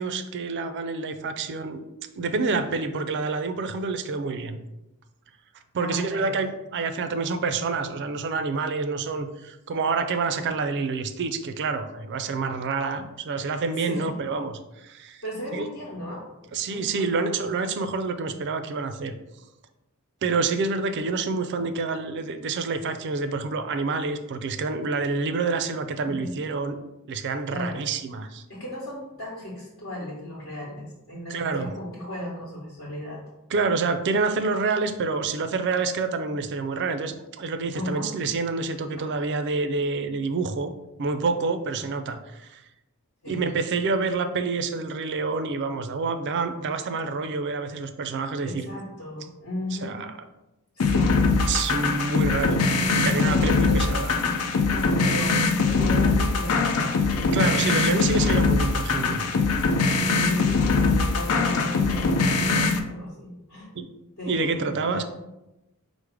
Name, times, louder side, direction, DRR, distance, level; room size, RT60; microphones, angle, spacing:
voice 1, 0.0-1.8 2.2-4.6 5.7-15.2 15.5-15.6 16.5-19.1 20.2-26.8 27.1-28.4 31.3-31.7 33.5-40.7 41.0-42.6 43.3-48.7 49.8-50.1 51.5-52.6 53.0-54.1 57.3-59.2 63.8-63.9 64.3-65.0, right 4 dB, 50° right, 9 dB, 0.4 m, -27 dB
voice 2, 5.8-6.3 13.7-14.2 15.2-16.2 16.6-17.5 26.0-26.3 27.5-27.8 28.5-33.2 37.7-38.1 39.0-39.1 43.2-43.4 48.4-50.0 50.7-51.6 53.2-53.8 54.7-57.0 57.8-58.1 59.8-63.7 64.2-65.0, left 1 dB, 60° left, -5 dB, 1.2 m, -35 dB
sound 1, 50.8-62.8, left 3 dB, 90° left, 0.5 m, -22 dB
4.8 x 2.0 x 4.7 m, 0.96 s
head